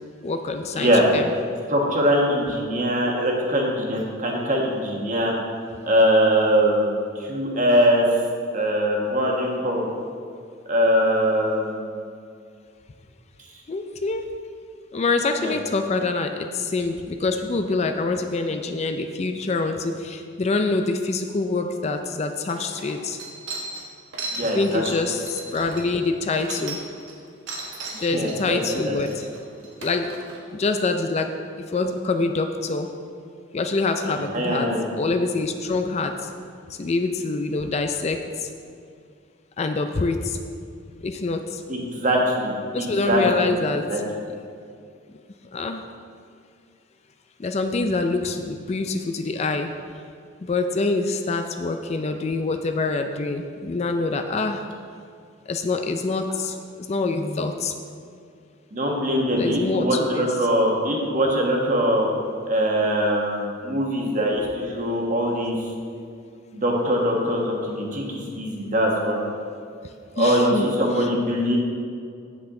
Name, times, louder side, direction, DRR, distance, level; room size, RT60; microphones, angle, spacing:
voice 1, 0.2-1.3 13.7-14.3 14.9-23.2 24.4-26.8 28.0-29.3 29.8-30.1 30.5-31.3 31.7-32.9 33.5-34.7 35.0-36.3 36.7-38.5 39.6-40.4 41.0-41.6 42.7-43.8 45.5-45.8 47.4-49.7 50.4-54.6 55.5-57.7 59.4-60.3 70.2-70.7 71.0-71.1, left 3 dB, 35° left, 6 dB, 0.4 m, -25 dB
voice 2, 0.8-1.1 1.7-5.3 5.8-8.0 8.5-9.9 10.7-12.0 15.4-15.5 24.3-24.8 28.0-29.0 34.0-34.9 41.7-43.6 43.9-44.0 58.7-62.1 62.5-65.5 66.5-69.2 70.1-71.6, equal, 40° right, -1 dB, 1.3 m, -22 dB
sound 1, 22.0-22.1 22.5-27.1 27.5-30.4, right 3 dB, 70° right, 1.4 m, -36 dB
8.3 x 7.9 x 3.7 m, 2.3 s
head